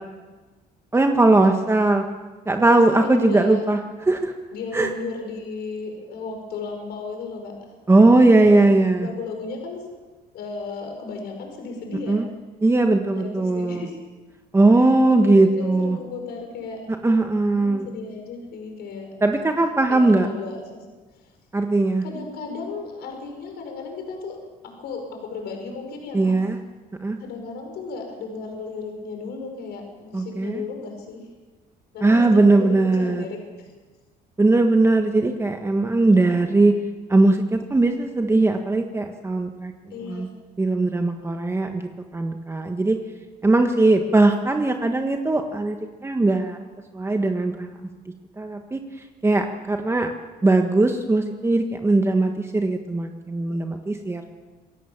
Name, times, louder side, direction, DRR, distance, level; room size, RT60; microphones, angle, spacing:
voice 1, 0.9-2.0 2.5-3.8 4.1-4.3 4.7-4.9 7.9-9.1 12.1-12.3 12.6-13.9 14.5-16.0 17.0-17.9 19.2-20.3 21.5-22.0 26.1-26.6 27.0-27.2 30.1-30.6 32.0-33.3 34.4-36.7 37.1-39.7 40.1-40.3 40.6-43.0 43.4-46.6 46.9-47.7 48.4-48.8 49.2-50.1 50.4-54.2, right 2 dB, 15° right, 5 dB, 1.4 m, -19 dB
voice 2, 2.6-3.7 4.5-7.8 8.2-8.6 9.0-9.9 10.3-12.2 13.1-14.0 14.8-16.8 17.6-19.6 19.9-20.8 21.1-21.3 22.0-24.4 24.6-26.3 27.2-31.2 31.9-33.7 36.1-36.6 39.9-40.3 44.6-44.8, left 4 dB, 75° left, 3 dB, 5.5 m, -35 dB
27.0 x 17.0 x 7.3 m, 1.3 s
cardioid pair, 110°, 17 cm